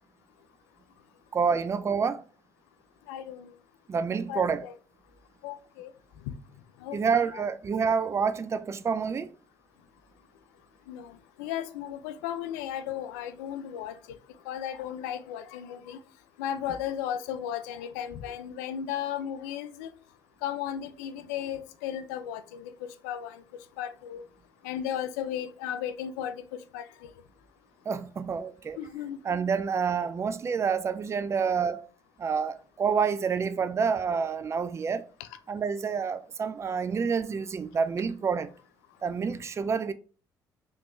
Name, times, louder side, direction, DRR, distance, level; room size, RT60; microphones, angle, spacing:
voice 1, 1.3-2.2 3.9-4.6 6.9-9.3 27.9-28.8 29.2-31.9 32.2-35.1 35.5-38.5 39.0-39.9, right 6 dB, 30° right, 0.3 m, -28 dB
voice 2, 3.1-3.5 4.3-4.7 5.4-5.9 6.3-6.4 6.8-7.0 7.3-7.4 10.9-14.0 14.5-16.0 16.4-19.9 20.4-23.4 23.8-24.2 24.6-27.1 28.8-29.4 35.2-35.3 39.1-39.2, left 10 dB, 85° left, 0.4 m, -35 dB
3.3 x 3.1 x 2.6 m
hypercardioid pair, 60°, 9 cm